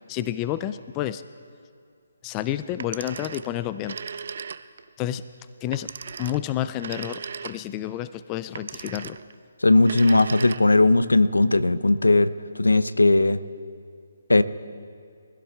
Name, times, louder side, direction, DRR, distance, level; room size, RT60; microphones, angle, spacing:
voice 1, 0.1-1.2 2.2-4.0 5.0-5.2 5.6-5.9 6.2-9.2, left 12 dB, 20° left, 13 dB, 0.3 m, -30 dB
Telephone, 2.7-4.9 5.7-7.9 8.5-9.3 9.8-10.9, right 6 dB, 55° right, 0.5 m, -37 dB
voice 2, 9.6-12.3 12.6-13.4 14.3-14.4, left 2 dB, 85° left, 13 dB, 0.6 m, -18 dB
24.0 x 16.5 x 2.4 m, 2.3 s
figure-of-eight pair, 145°, 0 cm